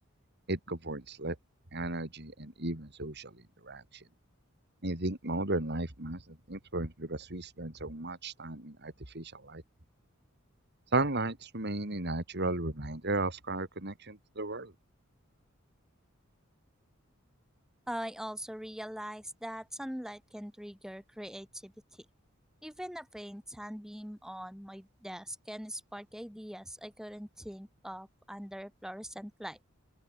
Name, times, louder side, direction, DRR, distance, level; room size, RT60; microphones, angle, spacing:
voice 1, 0.5-1.3 1.7-3.3 3.6-3.8 4.8-6.2 6.5-9.6 10.9-14.7, right 2 dB, 55° right, 3.3 m, -34 dB
voice 2, 17.9-21.7 22.6-29.6, equal, 5° right, 3.8 m, -42 dB
open air
head